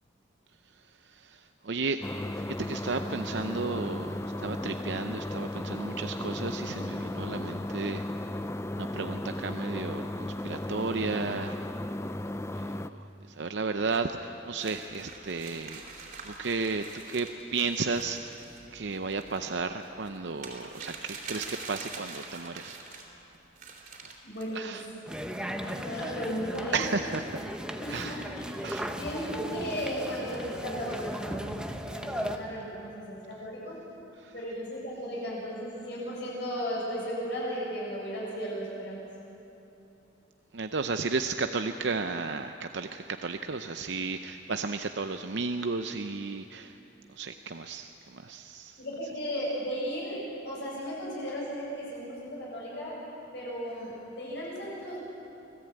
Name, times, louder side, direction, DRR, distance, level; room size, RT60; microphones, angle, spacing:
voice 1, 0.7-2.1 2.4-8.1 8.7-11.7 12.1-15.8 16.2-18.4 18.7-22.8 24.0-24.1 24.5-24.9 26.7-27.5 27.9-28.2 28.6-28.9 34.2-34.3 40.5-46.8 47.1-48.8, right 4 dB, 65° right, 7 dB, 0.7 m, -34 dB
sound 1, 2.0-12.9, left 1 dB, 15° left, 0.5 m, -35 dB
sound 2, 14.6-23.1 23.6-24.6, right 4 dB, 45° right, 3.5 m, -45 dB
voice 2, 24.2-24.8 25.5-26.8 27.8-28.5 29.0-33.8 34.3-39.0 48.8-53.0 53.3-55.0, equal, 60° left, -6 dB, 7.6 m, -35 dB
sound 3, 25.1-32.4, equal, 5° right, 1.0 m, -37 dB
25.5 x 17.0 x 8.9 m, 2.9 s
head